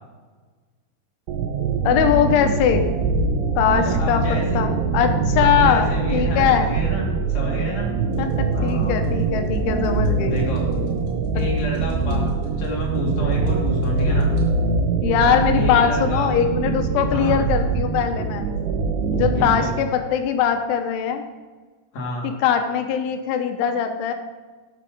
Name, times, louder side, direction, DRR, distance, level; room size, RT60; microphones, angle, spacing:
sound 1, 1.3-19.7, right 4 dB, 80° right, 3.3 m, -23 dB
voice 1, 1.8-2.9 3.6-6.7 8.2-10.4 11.4-11.5 11.8-11.9 15.0-18.5 19.1-21.2 22.2-24.1, left 8 dB, 80° left, 6 dB, 3.3 m, -21 dB
voice 2, 3.8-4.6 5.4-7.9 8.5-9.0 10.2-10.7 11.3-14.3 15.6-16.3 17.1-17.4 19.4-19.7 21.9-22.3, equal, 45° left, -2 dB, 2.9 m, -29 dB
sound 2, 8.1-14.5, right 2 dB, 55° right, 3.7 m, -37 dB
12.0 x 8.1 x 5.4 m, 1.4 s
omnidirectional pair, 5.8 m